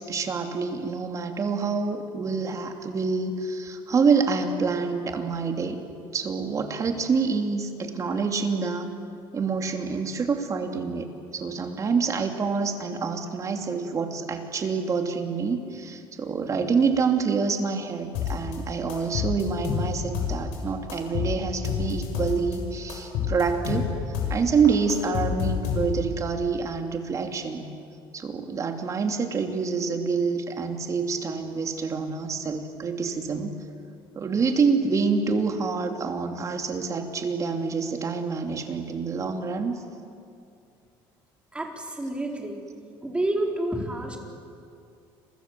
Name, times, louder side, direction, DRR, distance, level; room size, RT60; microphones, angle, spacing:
voice 1, 0.0-5.8 6.1-8.9 9.3-27.7 28.1-33.6 34.2-39.7, right 5 dB, 35° right, 4 dB, 2.8 m, -27 dB
sound 1, 18.1-18.6 18.9-20.6 20.9-22.6 22.9-24.4 24.6-26.2, left 7 dB, 90° left, 6.8 m, -28 dB
voice 2, 41.5-42.6 43.0-44.2, right 1 dB, 10° right, 1 dB, 4.1 m, -29 dB
29.5 x 24.0 x 7.6 m, 2.5 s
cardioid pair, 130°, 10 cm